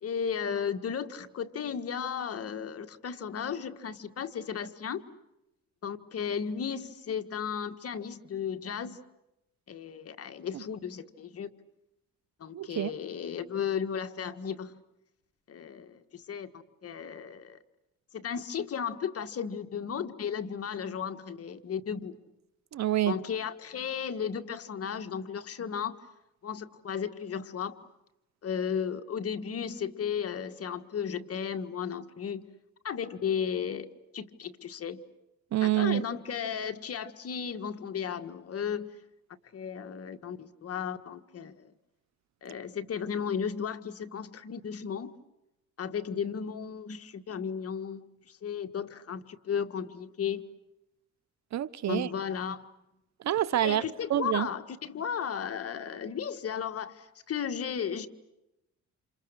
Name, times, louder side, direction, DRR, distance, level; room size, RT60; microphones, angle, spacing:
voice 1, 0.0-5.0 5.8-9.0 9.7-11.5 12.4-14.8 15.5-17.6 18.1-22.3 23.1-26.0 26.4-27.8 28.4-32.5 32.8-35.1 35.6-38.9 39.5-41.7 42.4-45.1 45.8-50.4 51.8-52.6 53.6-58.1, left 7 dB, 50° left, 1.7 m, -35 dB
voice 2, 12.5-12.9 22.7-23.2 35.5-36.0 51.5-52.1 53.2-53.8 54.1-54.5, right 13 dB, 65° right, 0.9 m, -27 dB
29.5 x 28.0 x 6.5 m
cardioid pair, 90°, 30 cm